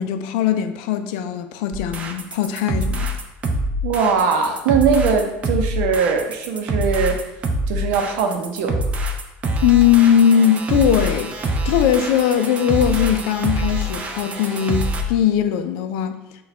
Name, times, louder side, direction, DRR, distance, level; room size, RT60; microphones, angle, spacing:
voice 1, 0.0-3.1 9.6-16.2, left 9 dB, 85° left, 0.4 m, -19 dB
sound 1, 1.7-15.0, right 1 dB, 25° right, 0.4 m, -25 dB
voice 2, 3.8-7.2 7.7-8.9, right 5 dB, 80° right, 0.6 m, -20 dB
4.1 x 2.3 x 4.0 m
cardioid pair, 140°, 5 cm